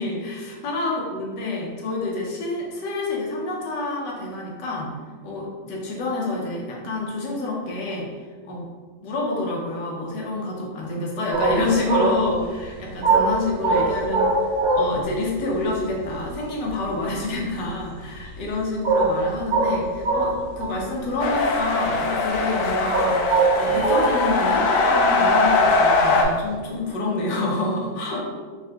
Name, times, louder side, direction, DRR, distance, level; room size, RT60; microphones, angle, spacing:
voice 1, 0.0-4.9 5.2-8.1 8.4-8.7 9.0-28.3, left 2 dB, 85° left, -2 dB, 1.4 m, -28 dB
sound 1, 11.3-15.1 15.4-15.5 15.7-16.7 17.0-17.8 18.3-18.5 18.8-20.8 21.2-22.0 22.3-24.3 25.7-26.3, right 3 dB, 75° right, 1.3 m, -22 dB
sound 2, 21.2-26.2, left 3 dB, 70° left, 0.8 m, -21 dB
3.8 x 3.4 x 2.2 m, 1.5 s
omnidirectional pair, 1.8 m